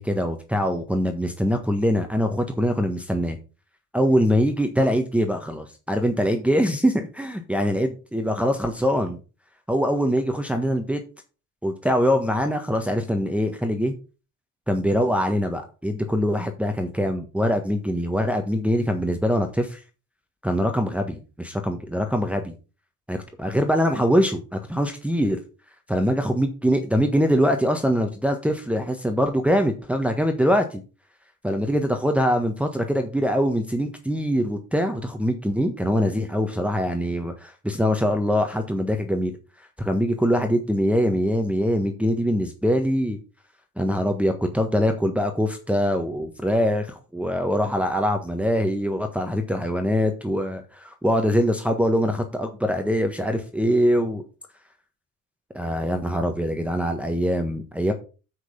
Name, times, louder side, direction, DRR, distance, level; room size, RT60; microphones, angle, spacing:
voice 1, 0.0-3.4 3.9-9.2 9.7-11.0 11.6-13.9 14.7-19.8 20.4-22.5 23.1-25.4 25.9-30.8 31.4-39.4 39.8-43.2 43.8-54.2 55.5-57.9, equal, 5° right, 4 dB, 1.4 m, -23 dB
7.7 x 6.5 x 5.2 m, 0.34 s
figure-of-eight pair, 50°, 43 cm